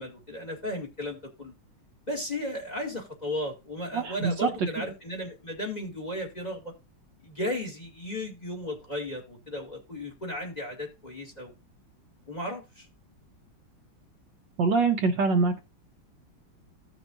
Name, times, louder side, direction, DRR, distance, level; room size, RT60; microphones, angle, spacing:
voice 1, 0.0-1.5 2.1-6.7 7.2-11.5 12.3-12.9, left 1 dB, 20° left, 2 dB, 2.2 m, -35 dB
voice 2, 3.9-4.5 14.6-15.6, right 4 dB, 65° right, 5 dB, 1.5 m, -24 dB
15.5 x 6.2 x 2.6 m, 0.25 s
omnidirectional pair, 2.2 m